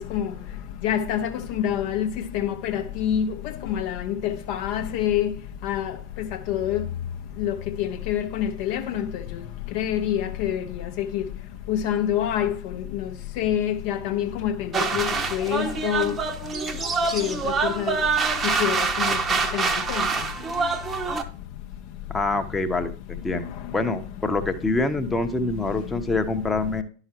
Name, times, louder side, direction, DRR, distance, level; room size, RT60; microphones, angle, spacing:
voice 1, 0.8-3.3 3.6-5.3 5.6-6.8 7.4-9.4 9.7-11.2 11.7-13.1 13.4-16.1 17.1-17.4 17.6-18.0 18.4-19.2 19.5-20.0, left 10 dB, 45° left, 0.5 m, -26 dB
sound 1, 14.7-21.2, right 4 dB, 25° right, 0.8 m, -25 dB
voice 2, 22.1-23.5 23.7-26.8, left 2 dB, 10° left, 0.8 m, -25 dB
11.0 x 5.7 x 2.8 m
figure-of-eight pair, 90°, 0 cm